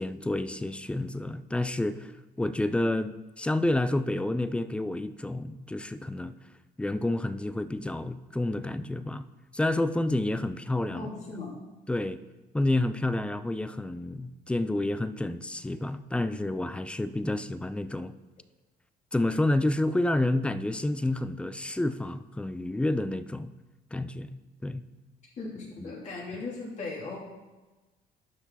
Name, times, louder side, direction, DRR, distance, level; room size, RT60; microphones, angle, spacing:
voice 1, 0.0-2.1 2.4-6.3 6.8-9.3 9.5-11.1 11.9-12.2 12.5-18.1 19.1-23.5 23.9-24.8 25.8-25.9, left 1 dB, 5° left, 13 dB, 0.4 m, -29 dB
voice 2, 10.9-11.5 25.4-27.2, left 3 dB, 45° left, -4 dB, 3.0 m, -37 dB
11.5 x 6.0 x 4.1 m, 1.2 s
cardioid pair, 110°, 17 cm